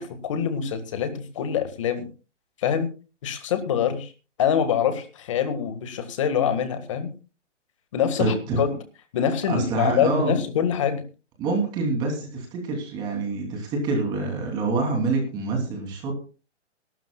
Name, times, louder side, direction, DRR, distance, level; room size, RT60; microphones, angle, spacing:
voice 1, 0.0-2.1 2.6-2.9 3.2-4.1 4.4-7.1 7.9-8.7 9.1-11.0, left 8 dB, 25° left, 9 dB, 1.8 m, -25 dB
voice 2, 8.2-8.6 9.5-10.4 11.4-16.2, right 3 dB, 10° right, 1 dB, 3.0 m, -26 dB
24.0 x 12.5 x 2.3 m, 0.34 s
hypercardioid pair, 175°, 36 cm